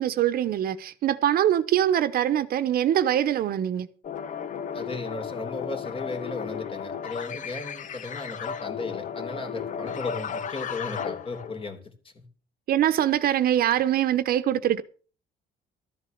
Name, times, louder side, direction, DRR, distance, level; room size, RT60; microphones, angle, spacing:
voice 1, 0.0-3.9 12.7-14.8, right 11 dB, 60° right, 1.0 m, -23 dB
sound 1, 4.0-11.7, left 7 dB, 50° left, 0.8 m, -34 dB
voice 2, 4.7-12.2, left 3 dB, 30° left, 2.9 m, -36 dB
13.5 x 7.8 x 6.7 m
cardioid pair, 110°, 17 cm